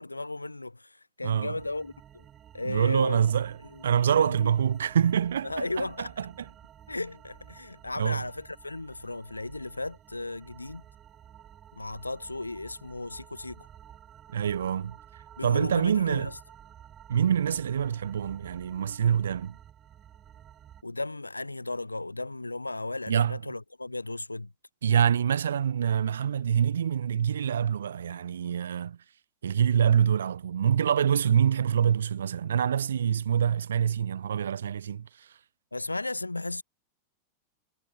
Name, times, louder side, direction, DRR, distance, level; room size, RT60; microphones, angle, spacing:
voice 1, 0.0-2.2 2.5-3.2 3.7-3.8 4.2-4.5 5.4-6.1 6.9-10.8 11.7-13.7 15.4-16.3 20.8-24.5 35.7-36.6, left 2 dB, 85° left, 1.2 m, -35 dB
voice 2, 1.2-1.6 2.6-3.5 3.8-6.5 8.0-8.2 14.3-14.9 15.4-16.3 17.1-19.5 23.1-23.4 24.8-29.0 29.4-35.1, right 8 dB, 65° right, 0.7 m, -25 dB
sound 1, 1.6-20.8, right 10 dB, 25° right, 4.5 m, -52 dB
figure-of-eight pair, 90°, 0 cm